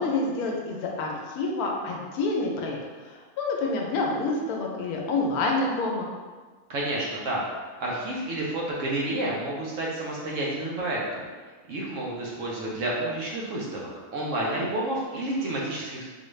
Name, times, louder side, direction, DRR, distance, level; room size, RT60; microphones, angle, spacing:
voice 1, 0.0-6.1, left 3 dB, 75° left, 0 dB, 1.1 m, -28 dB
voice 2, 6.7-7.4 7.8-11.3 11.7-13.8 14.1-16.0, right 1 dB, 60° right, -4 dB, 0.9 m, -30 dB
3.8 x 2.4 x 3.1 m, 1.4 s
omnidirectional pair, 1.6 m